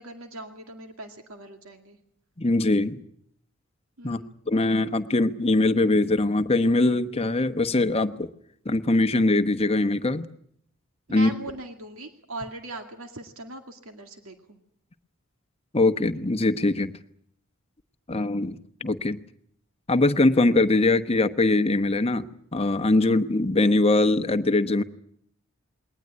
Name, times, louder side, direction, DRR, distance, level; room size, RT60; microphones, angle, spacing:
voice 1, 0.0-2.0 4.0-4.3 11.1-14.6, right 2 dB, 80° right, 5 dB, 2.3 m, -40 dB
voice 2, 2.4-3.0 4.0-4.2 4.5-8.3 8.6-10.3 11.1-11.3 15.7-16.9 18.1-19.2 19.9-22.3 22.5-24.8, left 2 dB, 30° left, 9 dB, 1.0 m, -22 dB
21.5 x 19.0 x 9.6 m, 0.69 s
head